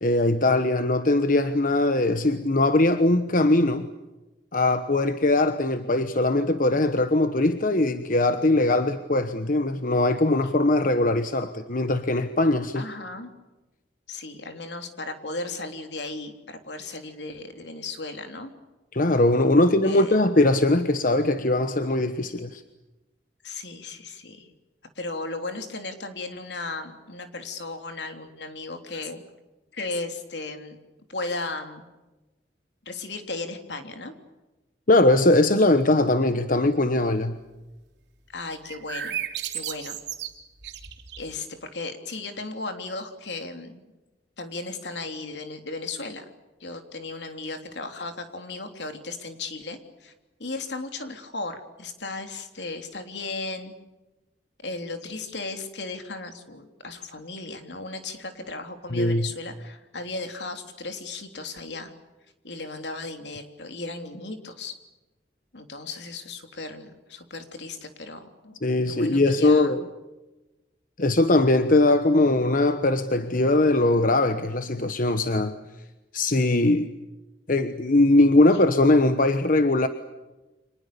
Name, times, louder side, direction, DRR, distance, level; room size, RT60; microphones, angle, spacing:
voice 1, 0.0-3.9 4.5-12.8 18.9-22.6 34.9-37.4 58.9-59.3 68.6-69.8 71.0-75.5 76.1-76.9 77.5-79.9, left 2 dB, 50° left, 9 dB, 1.2 m, -21 dB
voice 2, 12.7-13.3 14.1-18.5 19.5-20.2 23.4-24.5 24.9-29.2 29.7-30.8 31.1-31.8 32.8-34.1 38.3-39.2 39.5-40.0 41.2-43.8 44.4-46.2 46.6-50.1 50.4-53.7 54.6-61.9 62.4-64.7 65.5-68.6 68.8-69.7, left 3 dB, 75° left, 6 dB, 3.3 m, -36 dB
sound 1, 38.6-41.4, right 10 dB, 70° right, 3.4 m, -34 dB
30.0 x 26.0 x 6.9 m, 1.1 s
head